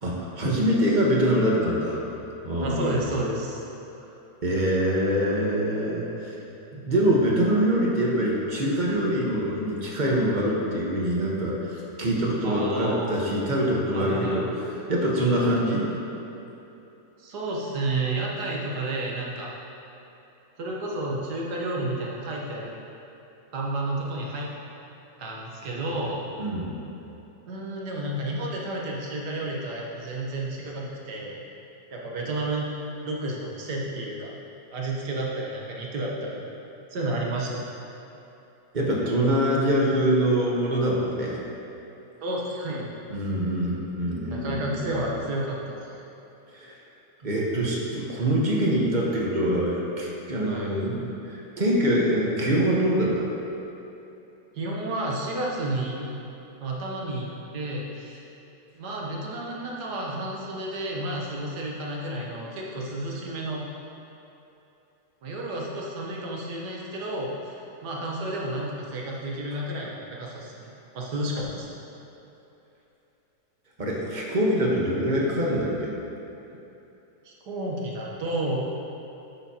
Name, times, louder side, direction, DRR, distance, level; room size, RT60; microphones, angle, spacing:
voice 1, 0.0-2.0 2.4-3.0 4.4-6.4 6.8-11.7 12.0-14.4 14.9-15.9 26.4-26.7 38.7-41.4 43.1-44.8 46.5-46.8 47.2-53.3 73.8-75.9, equal, 30° right, -4 dB, 1.3 m, -24 dB
voice 2, 2.6-3.6 12.4-13.2 13.9-14.4 15.4-15.6 17.2-19.5 20.6-22.8 23.5-24.5 25.2-26.3 27.5-31.4 31.9-32.7 33.0-34.3 34.7-36.5 36.9-37.7 42.2-42.9 44.3-46.0 50.5-50.7 54.5-56.1 56.6-58.3 58.8-63.7 65.2-70.7 70.9-71.8 77.2-78.6, right 1 dB, 90° right, -3 dB, 1.7 m, -31 dB
10.5 x 7.5 x 2.9 m, 3.0 s
omnidirectional pair, 1.7 m